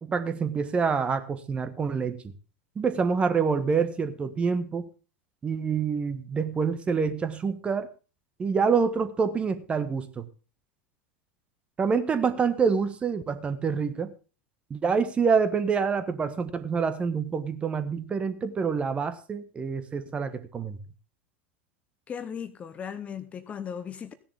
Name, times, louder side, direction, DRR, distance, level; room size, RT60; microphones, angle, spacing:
voice 1, 0.0-2.2 2.7-4.9 5.4-7.9 8.4-10.2 11.8-14.1 14.7-20.8, right 5 dB, 20° right, 12 dB, 1.3 m, -26 dB
voice 2, 22.1-24.1, left 7 dB, 20° left, 12 dB, 0.9 m, -37 dB
16.0 x 10.5 x 3.6 m, 0.34 s
figure-of-eight pair, 90°, 6 cm